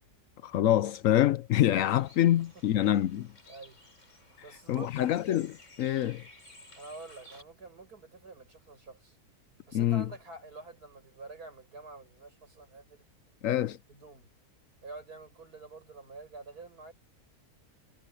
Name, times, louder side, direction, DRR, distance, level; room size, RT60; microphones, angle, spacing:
voice 1, 0.4-3.3 4.7-6.2 9.7-10.1 13.4-13.8, left 12 dB, 70° left, 0.9 m, -26 dB
Bird, 1.8-7.4, left 1 dB, 50° left, 5.1 m, -55 dB
voice 2, 3.5-3.8 4.4-5.0 6.8-9.2 9.7-13.0 13.5-14.3 14.8-16.9, right 3 dB, 80° right, 6.9 m, -48 dB
omnidirectional pair, 1.6 m